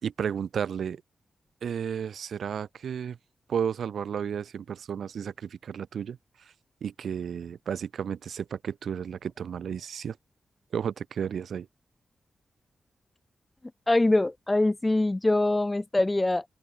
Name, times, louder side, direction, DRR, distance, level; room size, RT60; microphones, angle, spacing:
voice 1, 0.0-1.0 1.6-3.2 3.5-6.2 6.8-10.2 10.7-11.7, right 7 dB, 80° right, 3.3 m, -32 dB
voice 2, 13.9-16.4, left 2 dB, 20° left, 3.0 m, -23 dB
open air
wide cardioid pair, 100°, 0 cm